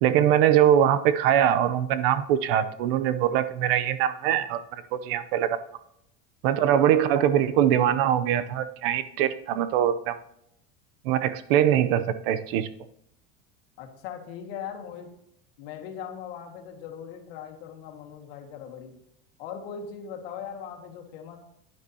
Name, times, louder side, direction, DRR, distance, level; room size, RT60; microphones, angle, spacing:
voice 1, 0.0-5.6 6.4-10.2 11.0-12.7, right 10 dB, 70° right, 13 dB, 0.8 m, -22 dB
voice 2, 13.8-15.1 15.6-19.0 19.4-21.4, left 8 dB, 80° left, 3 dB, 1.9 m, -39 dB
11.0 x 9.6 x 2.9 m, 0.75 s
cardioid pair, 175°, 29 cm